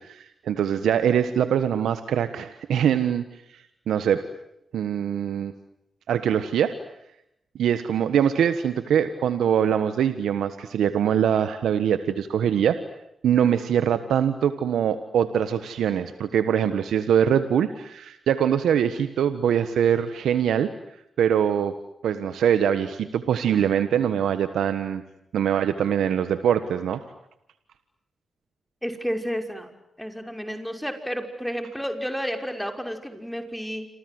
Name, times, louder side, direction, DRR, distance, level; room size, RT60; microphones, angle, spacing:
voice 1, 0.0-3.2 3.5-4.2 4.7-5.5 6.1-6.7 7.6-12.8 13.2-20.7 21.2-21.7 22.0-25.0 25.3-27.0, right 9 dB, 90° right, 11 dB, 1.3 m, -23 dB
voice 2, 28.8-29.7 30.0-33.9, equal, ahead, 5 dB, 6.0 m, -31 dB
28.5 x 26.5 x 7.9 m, 0.81 s
supercardioid pair, 50°, 0 cm